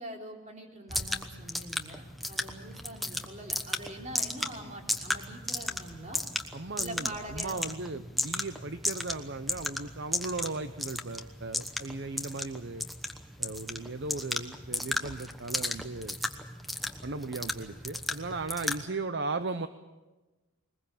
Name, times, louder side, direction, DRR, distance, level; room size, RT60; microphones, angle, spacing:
voice 1, 0.0-6.2 6.8-7.9 18.8-19.0, right 1 dB, 35° right, 1 dB, 3.5 m, -44 dB
sound 1, 0.9-18.8, left 1 dB, ahead, 1.1 m, -35 dB
voice 2, 6.5-12.8 13.4-16.2 17.0-19.7, right 3 dB, 55° right, 10 dB, 0.7 m, -37 dB
21.5 x 21.0 x 7.3 m, 1.1 s
head